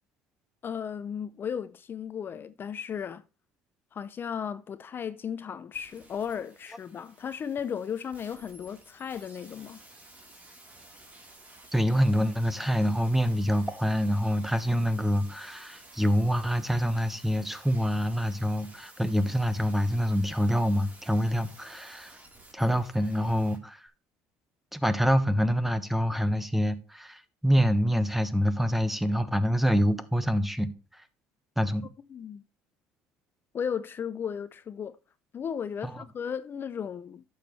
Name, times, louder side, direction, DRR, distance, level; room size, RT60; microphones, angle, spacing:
voice 1, 0.6-3.2 3.9-9.8 32.1-32.4 33.5-35.0 35.3-37.2, left 7 dB, 40° left, 0.5 m, -35 dB
sound 1, 5.7-23.6 23.9-24.0, right 2 dB, 25° right, 3.6 m, -53 dB
voice 2, 11.7-22.2 22.5-23.9 24.7-31.0 31.6-31.9 35.8-36.0, equal, 5° right, 1.2 m, -26 dB
11.5 x 7.1 x 3.2 m
supercardioid pair, 90°, 6 cm